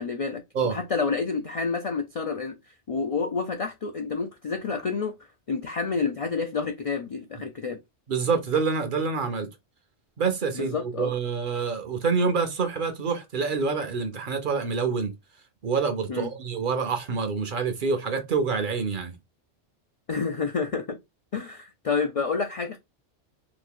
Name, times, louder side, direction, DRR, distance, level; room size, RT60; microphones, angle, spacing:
voice 1, 0.0-2.5 2.9-5.2 5.5-7.8 10.5-11.1 16.1-16.3 20.1-21.0 21.3-22.8, left 5 dB, 70° left, 0.3 m, -29 dB
voice 2, 8.1-9.5 10.2-15.1 15.6-19.2, right 5 dB, 55° right, 0.7 m, -27 dB
2.9 x 2.5 x 3.6 m
omnidirectional pair, 1.2 m